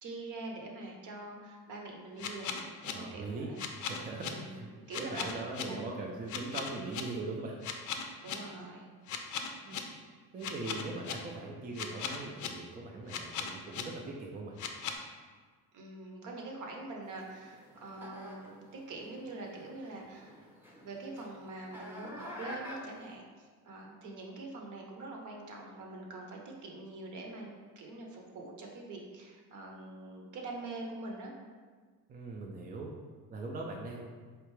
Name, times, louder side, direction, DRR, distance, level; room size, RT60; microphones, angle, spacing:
voice 1, 0.0-3.6 4.1-6.6 8.2-8.9 15.7-20.4 20.8-27.5 27.8-31.3, right 2 dB, 55° right, 0 dB, 0.8 m, -44 dB
sound 1, 2.2-2.9 3.6-4.3 4.9-5.6 6.3-7.0 7.6-8.3 9.1-9.8 10.4-11.1 11.7-12.5 13.1-13.8 14.6-15.0, left 8 dB, 55° left, 0.5 m, -37 dB
voice 2, 2.9-3.5 3.9-4.7 5.0-7.6 9.6-9.8 10.3-14.5 32.1-32.9 33.3-34.1, right 3 dB, 25° right, 0 dB, 0.4 m, -40 dB
sound 2, 17.0-23.2, left 1 dB, 5° right, 0.7 m, -49 dB
4.5 x 2.4 x 3.1 m, 1.5 s
cardioid pair, 100°, 36 cm